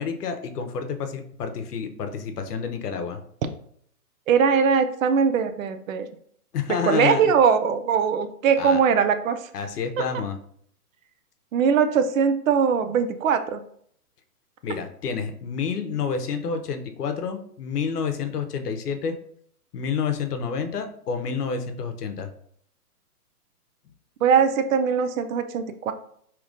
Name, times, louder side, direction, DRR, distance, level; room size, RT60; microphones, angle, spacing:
voice 1, 0.0-3.2 6.5-7.3 8.6-8.8 9.5-10.4 14.6-19.1 19.7-22.3, left 6 dB, 75° left, 6 dB, 0.8 m, -29 dB
voice 2, 4.3-6.1 6.9-9.4 11.5-13.6 24.2-25.9, right 6 dB, 60° right, 9 dB, 0.5 m, -21 dB
4.9 x 2.9 x 2.5 m, 0.65 s
hypercardioid pair, 155°, 47 cm